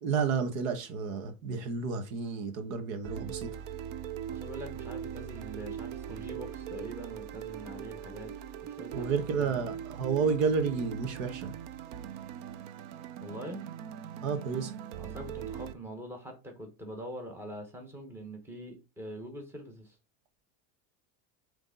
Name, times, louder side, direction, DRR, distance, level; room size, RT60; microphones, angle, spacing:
voice 1, 0.0-3.6 8.9-11.5 14.2-14.7, right 5 dB, 85° right, 1.4 m, -31 dB
sound 1, 3.0-15.7, right 9 dB, 50° right, 0.6 m, -41 dB
voice 2, 4.3-8.3 8.6-9.6 13.2-13.6 14.9-20.0, equal, 5° right, 1.1 m, -43 dB
7.9 x 3.4 x 3.8 m
cardioid pair, 170°, 39 cm